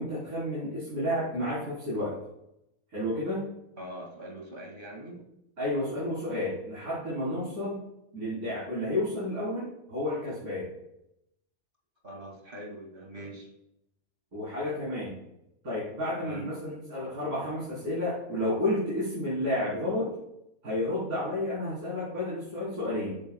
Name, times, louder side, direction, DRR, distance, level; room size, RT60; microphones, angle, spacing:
voice 1, 0.0-2.1 2.9-3.5 5.6-7.8 8.1-10.7 14.3-15.2 15.6-20.1 20.6-23.1, left 1 dB, 80° right, -10 dB, 4.5 m, -31 dB
voice 2, 3.8-5.2 12.0-13.5 16.2-16.4, right 1 dB, 35° right, 0 dB, 2.6 m, -42 dB
15.0 x 10.5 x 2.3 m, 0.84 s
omnidirectional pair, 1.6 m